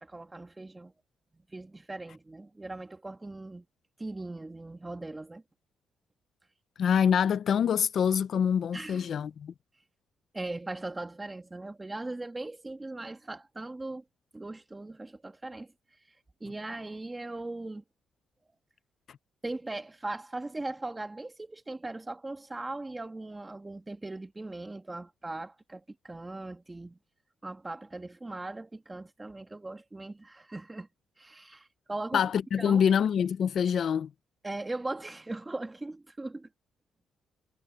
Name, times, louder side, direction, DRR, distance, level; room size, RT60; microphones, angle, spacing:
voice 1, 0.0-0.9 1.3-3.6 4.0-5.4 8.7-9.1 10.3-14.0 14.3-15.7 16.1-16.2 16.4-17.8 19.4-27.0 27.4-30.9 31.2-32.3 32.6-32.8 34.4-36.5, right 2 dB, 15° right, 2.3 m, -39 dB
voice 2, 6.8-9.5 32.1-34.1, left 8 dB, 60° left, 0.6 m, -25 dB
cardioid pair, 90°, 0 cm